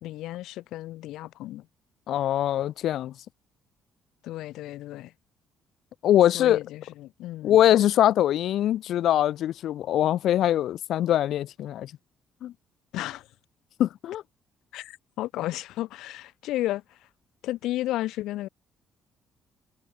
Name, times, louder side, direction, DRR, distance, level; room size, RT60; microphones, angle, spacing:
voice 1, 0.0-1.7 4.2-5.1 6.3-7.6 12.9-13.3 14.7-17.0 17.4-18.5, left 15 dB, 85° left, 3.2 m, -33 dB
voice 2, 2.1-3.1 6.0-6.6 7.4-11.9 12.4-12.5 13.8-14.2, left 12 dB, 70° left, 1.3 m, -22 dB
cardioid pair, 110°, 0 cm